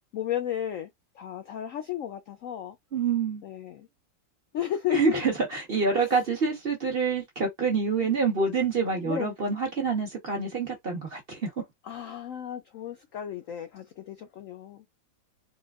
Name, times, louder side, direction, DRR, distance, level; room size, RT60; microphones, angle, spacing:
voice 1, 0.1-0.9 1.2-2.7 3.4-3.9 4.5-5.2 5.9-6.0 8.0-8.1 9.0-9.3 11.9-14.8, left 11 dB, 70° left, 0.7 m, -33 dB
voice 2, 2.9-3.4 4.9-11.5, right 4 dB, 35° right, 1.2 m, -27 dB
4.4 x 2.1 x 2.4 m
omnidirectional pair, 2.0 m